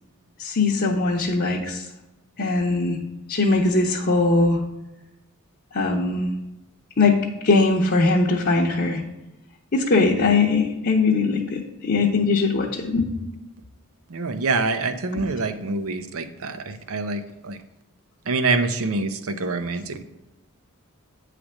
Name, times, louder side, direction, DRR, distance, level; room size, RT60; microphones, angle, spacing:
voice 1, 0.4-1.8 2.4-3.0 3.3-4.6 5.7-6.3 7.0-7.2 7.4-9.0 9.7-13.1 15.1-15.2, left 3 dB, 50° left, -4 dB, 0.9 m, -20 dB
voice 2, 14.1-17.6 18.3-20.0, right 3 dB, 65° right, 9 dB, 0.7 m, -26 dB
8.6 x 3.3 x 6.2 m, 0.96 s
head